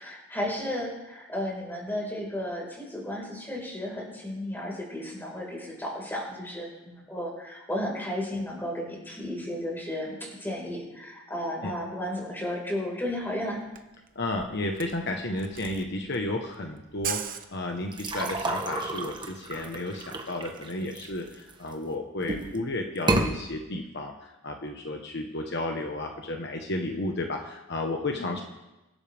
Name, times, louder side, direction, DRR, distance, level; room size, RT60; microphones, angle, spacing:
voice 1, 0.0-13.6 28.2-28.3, left 1 dB, 10° left, -3 dB, 5.0 m, -33 dB
Camera, 13.3-13.4 13.6-18.1, right 9 dB, 45° right, 0.9 m, -39 dB
voice 2, 14.1-28.4, left 2 dB, 55° left, 2 dB, 1.3 m, -32 dB
sound 1, 17.9-21.7 22.2-22.6 23.0-23.3, right 2 dB, 20° right, 1.3 m, -30 dB
24.0 x 13.0 x 3.6 m, 1.0 s
head